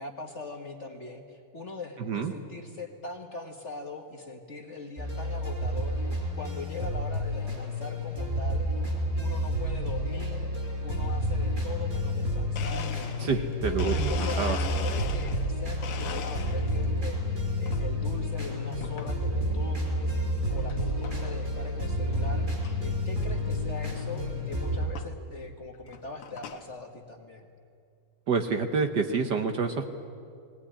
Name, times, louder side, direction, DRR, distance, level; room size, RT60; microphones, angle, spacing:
voice 1, 0.0-8.7 9.2-12.9 13.3-17.2 17.6-20.1 20.5-22.5 22.8-27.5, left 3 dB, 35° left, 3 dB, 1.5 m, -41 dB
voice 2, 2.0-2.3 13.2-14.6 28.3-29.8, right 5 dB, 55° right, 6 dB, 1.5 m, -28 dB
sound 1, 5.0-24.9, equal, 35° right, 4.9 m, -30 dB
Domestic sounds home sounds, 12.6-15.5 15.8-16.9 17.3-17.8 18.8-19.1 19.7-19.8 20.7-20.8 21.0-21.4 21.8-21.9 22.1-22.2 22.6-22.7 24.1-24.2 25.0-25.1 25.7-26.7, left 7 dB, 75° left, 2.0 m, -39 dB
19.0 x 19.0 x 9.9 m, 2.4 s
omnidirectional pair, 2.4 m